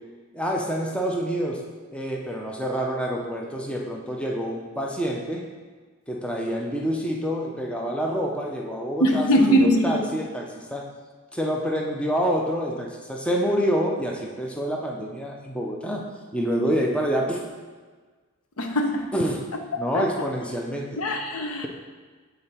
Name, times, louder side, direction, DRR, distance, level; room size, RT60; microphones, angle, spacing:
voice 1, 0.3-1.6 1.9-5.5 6.1-10.9 11.3-16.0 16.3-17.4 19.1-19.4 19.8-21.0, equal, 5° left, -1 dB, 0.5 m, -27 dB
voice 2, 9.0-10.0 18.6-19.1 19.9-20.0 21.0-21.7, equal, 85° left, 4 dB, 0.8 m, -21 dB
8.4 x 3.9 x 4.3 m, 1.4 s
head